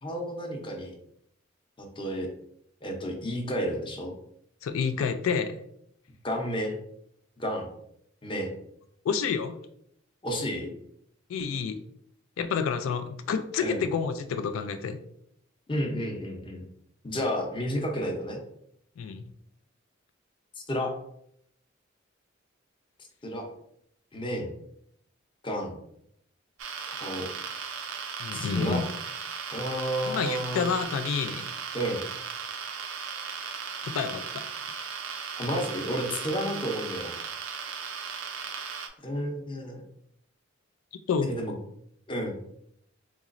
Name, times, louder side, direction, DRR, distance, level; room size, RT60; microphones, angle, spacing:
voice 1, 0.0-0.9 1.8-2.3 2.8-4.1 6.2-6.7 7.4-7.7 8.2-8.5 10.2-10.7 13.6-13.8 15.7-16.6 17.0-18.4 20.7-20.9 23.2-23.5 24.1-24.5 25.4-25.8 26.9-27.3 28.3-28.8 29.5-30.7 31.7-32.0 35.4-37.1 39.0-39.8 41.3-41.5 42.1-42.4, equal, 25° left, 2 dB, 0.6 m, -31 dB
voice 2, 4.6-5.6 9.0-9.6 11.3-11.8 12.4-15.0 19.0-19.2 28.2-28.8 30.1-31.5 33.8-34.2 41.1-41.3, left 6 dB, 90° left, 9 dB, 0.3 m, -29 dB
sound 1, 26.6-38.9, right 6 dB, 80° right, 0.5 m, -37 dB
3.8 x 3.0 x 2.5 m, 0.72 s
head